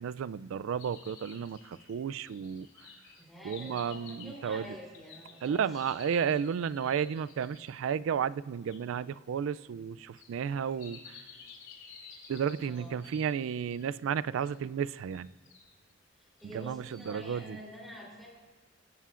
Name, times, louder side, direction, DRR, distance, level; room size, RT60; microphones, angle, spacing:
voice 1, 0.0-2.7 3.4-4.8 5.4-11.2 12.3-15.3 16.5-17.6, right 7 dB, 80° right, 0.3 m, -33 dB
sound 1, 0.8-7.8 8.7-8.8 10.1-13.9 14.4-14.5 15.1-15.7 16.4-17.2, left 5 dB, 80° left, 2.7 m, -53 dB
voice 2, 3.2-5.9 12.6-13.0 16.2-18.3, equal, ahead, 3.4 m, -47 dB
22.5 x 11.0 x 2.5 m
head